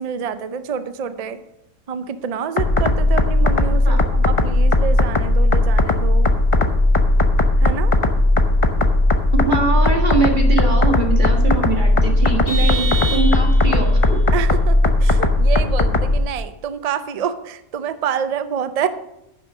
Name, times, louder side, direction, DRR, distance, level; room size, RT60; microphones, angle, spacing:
voice 1, 0.0-1.4 1.9-6.3 7.6-7.9 14.3-18.9, right 7 dB, 55° right, 11 dB, 0.4 m, -27 dB
sound 1, 2.6-16.2, left 2 dB, 30° left, 0.6 m, -16 dB
voice 2, 9.3-14.2, right 4 dB, 35° right, 2 dB, 1.9 m, -23 dB
Vehicle horn car horn honking, 12.5-13.9, right 4 dB, 75° left, 2.5 m, -27 dB
10.0 x 6.8 x 6.1 m, 0.86 s
omnidirectional pair, 1.6 m